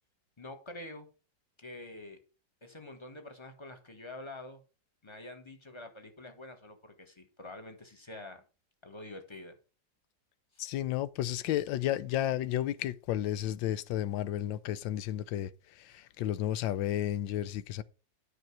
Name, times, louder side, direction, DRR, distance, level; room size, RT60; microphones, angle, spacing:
voice 1, 0.4-1.1 1.6-2.2 2.6-4.6 5.0-8.4 8.8-9.5 10.5-10.7, left 2 dB, 15° left, 1.4 m, -46 dB
voice 2, 10.6-17.8, left 12 dB, 90° left, 1.4 m, -32 dB
9.2 x 5.9 x 5.9 m
omnidirectional pair, 2.0 m